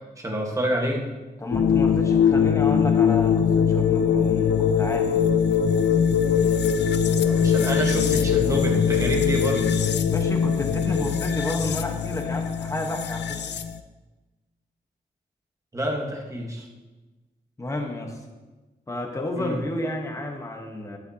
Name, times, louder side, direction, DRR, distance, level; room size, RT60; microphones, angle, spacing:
voice 1, 0.2-1.1 7.1-9.7 15.7-16.7 19.4-19.6, equal, 20° right, 0 dB, 1.4 m, -28 dB
voice 2, 1.4-5.2 10.1-13.4 17.6-18.2 18.9-21.0, left 1 dB, 20° left, 2 dB, 1.1 m, -31 dB
sound 1, 1.5-13.8, left 7 dB, 85° left, 0.6 m, -21 dB
11.5 x 11.5 x 2.8 m, 1.2 s
wide cardioid pair, 180°, 17 cm